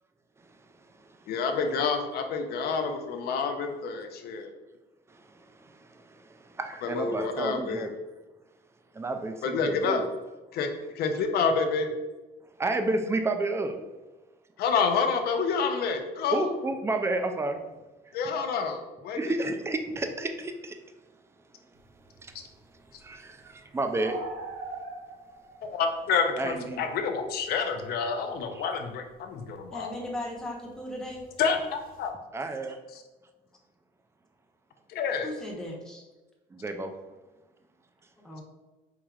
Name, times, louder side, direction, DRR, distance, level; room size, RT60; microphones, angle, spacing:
voice 1, 1.3-4.5 6.8-7.9 9.4-10.0 10.5-10.7 10.9-11.9 14.6-16.5 18.1-19.2 25.6-30.0 31.4-32.1 32.9-33.0 34.9-35.3, left 5 dB, 70° left, 6 dB, 0.6 m, -28 dB
voice 2, 5.6-7.9 9.0-10.1 12.6-13.8 16.3-17.6 19.1-20.7 22.2-22.3 23.0-24.2 26.4-26.9 28.6-28.7 32.3-32.8 36.5-36.9, right 2 dB, 15° right, 6 dB, 0.4 m, -31 dB
sound 1, 21.8-27.9 28.1-32.1, right 3 dB, 60° right, 0.6 m, -44 dB
voice 3, 29.7-31.2 35.2-36.0 38.2-38.4, left 1 dB, 5° left, -3 dB, 0.9 m, -37 dB
4.7 x 2.9 x 2.4 m, 1.1 s
cardioid pair, 110°, 17 cm